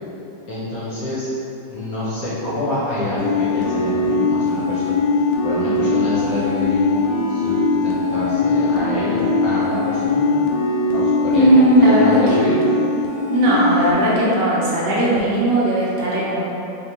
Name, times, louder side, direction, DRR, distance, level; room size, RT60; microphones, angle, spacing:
voice 1, 0.5-1.3 1.7-7.0 7.3-10.4 10.9-12.6, left 1 dB, 60° left, -8 dB, 1.1 m, -27 dB
sound 1, 3.2-14.3, left 3 dB, 80° left, 1.2 m, -20 dB
voice 2, 11.3-12.5 13.3-16.4, right 1 dB, 70° right, -7 dB, 1.5 m, -17 dB
3.8 x 3.4 x 2.9 m, 2.8 s
omnidirectional pair, 2.0 m